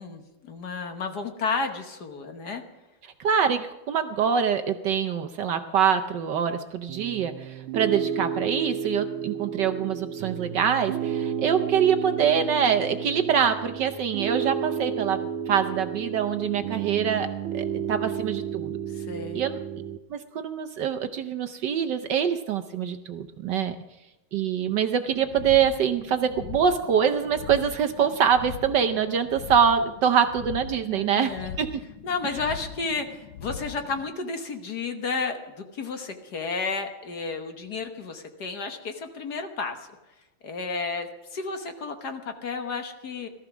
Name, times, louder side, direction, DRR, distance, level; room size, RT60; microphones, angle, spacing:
voice 1, 0.0-2.6 18.9-19.4 30.9-31.6 32.0-39.9 40.4-43.3, left 4 dB, 55° left, 6 dB, 1.6 m, -32 dB
voice 2, 3.2-17.3 17.5-18.7 19.3-19.6 20.1-23.8 24.3-31.7, right 7 dB, 65° right, 8 dB, 1.2 m, -24 dB
Piano, 6.9-20.0, right 8 dB, 80° right, 1.6 m, -32 dB
sound 1, 25.1-34.1, left 7 dB, 80° left, 1.7 m, -41 dB
18.0 x 13.5 x 6.1 m, 1.0 s
omnidirectional pair, 2.4 m